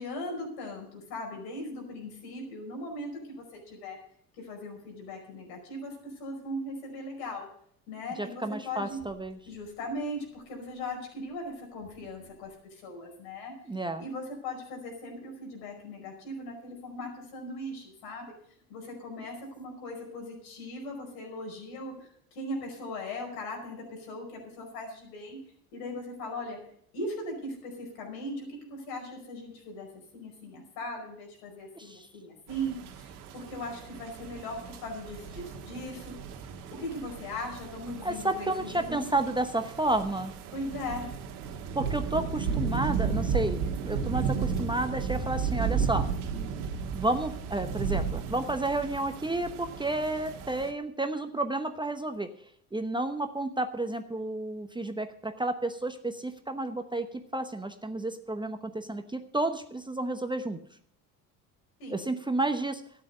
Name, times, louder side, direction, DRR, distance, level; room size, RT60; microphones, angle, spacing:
voice 1, 0.0-4.0 4.4-7.5 7.9-9.0 9.5-13.5 14.0-18.3 18.7-25.4 25.7-26.7 26.9-36.2 36.7-39.3 40.5-41.1 61.8-62.1, left 1 dB, 70° left, 1 dB, 5.3 m, -39 dB
voice 2, 8.2-9.4 13.7-14.0 31.8-32.1 38.0-40.3 41.7-46.1 46.9-52.3 52.7-60.6 61.9-62.8, right 2 dB, 10° right, 7 dB, 0.9 m, -31 dB
sound 1, 32.5-50.7, right 6 dB, 75° right, 1.6 m, -34 dB
13.0 x 9.1 x 6.8 m, 0.65 s
hypercardioid pair, 65°, 46 cm